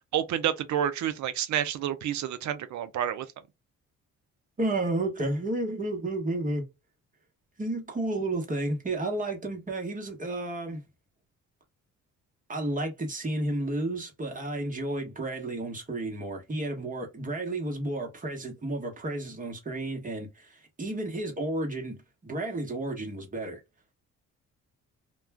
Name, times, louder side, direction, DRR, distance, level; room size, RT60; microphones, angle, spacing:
voice 1, 0.1-3.3, right 10 dB, 70° right, 0.5 m, -29 dB
voice 2, 4.6-6.7 7.6-10.8 12.5-23.6, right 2 dB, 25° right, 1.1 m, -32 dB
2.3 x 2.3 x 3.3 m
cardioid pair, 90°, 30 cm